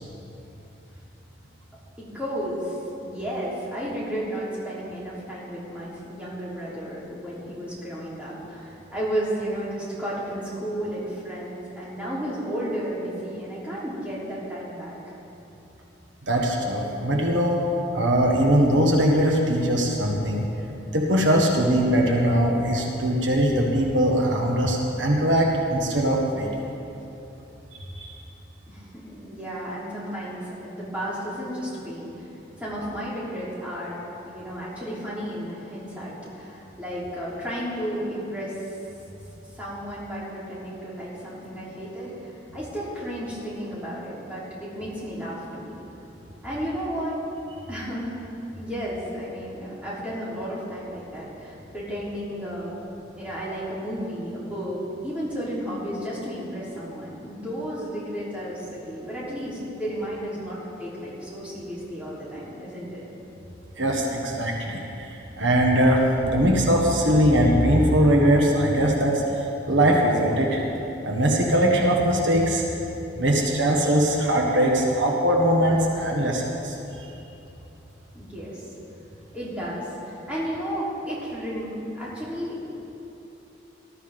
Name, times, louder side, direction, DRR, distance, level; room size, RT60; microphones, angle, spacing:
voice 1, 2.0-15.1 28.7-32.3 32.6-38.7 39.5-45.7 46.4-47.2 47.7-48.1 48.5-52.8 53.2-63.0 78.1-78.7 79.3-82.6, equal, 5° right, -8 dB, 3.4 m, -33 dB
voice 2, 16.3-17.6 17.9-20.4 20.9-26.8 27.7-28.1 63.8-70.6 71.0-72.6 73.1-76.8, equal, 75° right, -1 dB, 1.6 m, -21 dB
19.0 x 13.0 x 3.7 m, 2.9 s
head